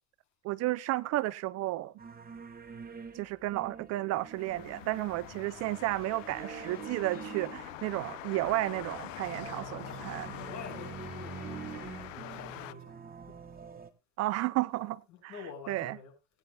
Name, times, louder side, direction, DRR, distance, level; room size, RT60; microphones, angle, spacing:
voice 1, 0.4-1.9 3.1-10.3 14.2-15.3 15.7-16.0, right 17 dB, 45° right, 0.5 m, -32 dB
sound 1, 2.0-13.9, right 6 dB, 25° right, 1.6 m, -46 dB
sound 2, 4.2-12.7, left 15 dB, 85° left, 0.6 m, -45 dB
voice 2, 9.8-13.0 13.3-13.4 15.1-16.1, left 6 dB, 45° left, 6.4 m, -47 dB
19.5 x 9.7 x 2.3 m
hypercardioid pair, 85°, 38 cm